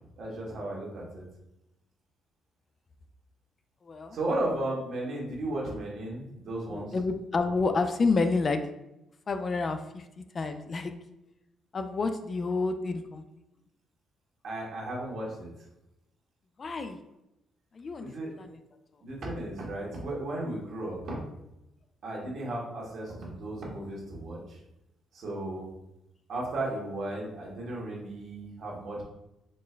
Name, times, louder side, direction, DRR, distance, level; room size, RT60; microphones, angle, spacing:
voice 1, 0.2-1.2 4.1-6.9 14.4-15.5 18.0-18.3 19.0-21.2 22.0-24.6 25.1-25.7 26.3-29.0, right 1 dB, 65° right, -3 dB, 1.3 m, -35 dB
voice 2, 3.8-4.2 6.7-8.6 9.3-10.9 11.7-13.2 16.6-17.0 17.7-18.6, left 3 dB, 40° left, 8 dB, 0.3 m, -29 dB
4.2 x 2.0 x 3.3 m, 0.87 s
cardioid pair, 90°, 0 cm